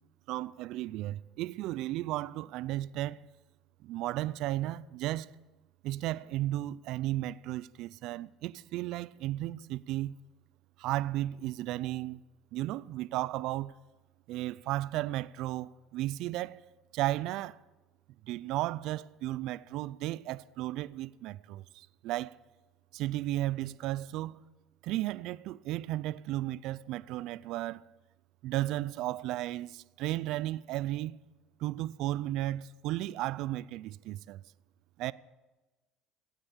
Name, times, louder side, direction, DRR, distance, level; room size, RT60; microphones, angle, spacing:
voice 1, 0.3-3.2 3.8-5.3 5.8-10.2 10.8-12.2 12.5-13.7 14.3-16.6 16.9-17.6 18.3-22.4 22.9-24.4 24.8-27.8 28.4-31.2 31.6-34.4 35.0-35.1, right 15 dB, 65° right, 0.4 m, -34 dB
16.5 x 8.9 x 7.3 m
supercardioid pair, 95°, 0 cm